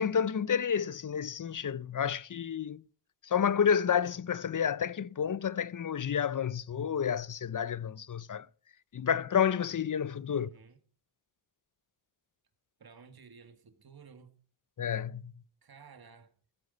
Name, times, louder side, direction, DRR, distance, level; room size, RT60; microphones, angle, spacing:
voice 1, 0.0-2.8 3.2-8.5 8.9-10.5 14.8-15.3, left 8 dB, 50° left, 0.6 m, -30 dB
voice 2, 10.3-10.8 12.8-14.4 15.6-16.3, right 5 dB, 60° right, 1.8 m, -54 dB
16.0 x 12.5 x 5.2 m
wide cardioid pair, 110°, 42 cm